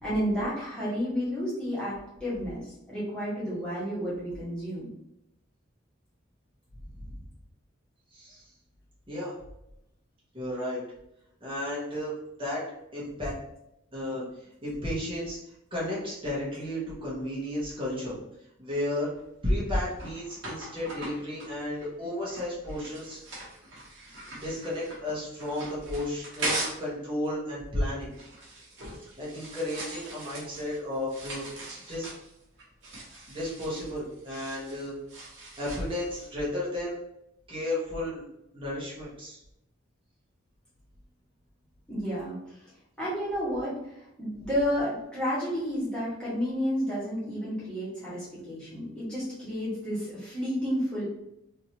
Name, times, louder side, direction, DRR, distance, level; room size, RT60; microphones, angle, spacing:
voice 1, 0.0-4.9 41.9-42.6 43.0-51.0, equal, 5° left, -10 dB, 1.5 m, -31 dB
voice 2, 8.1-8.5 9.1-9.3 10.3-10.8 11.4-12.1 12.4-12.6 12.9-13.3 13.9-15.4 15.7-18.2 18.6-19.1 19.4-23.4 24.4-28.1 29.2-31.4 31.9-32.1 33.3-34.9 35.6-37.0 37.5-38.2 38.5-39.4, left 1 dB, 25° right, -7 dB, 1.3 m, -33 dB
sound 1, 19.2-26.9 27.2-36.3, right 2 dB, 60° right, 1.3 m, -40 dB
3.5 x 2.8 x 2.9 m, 0.82 s
head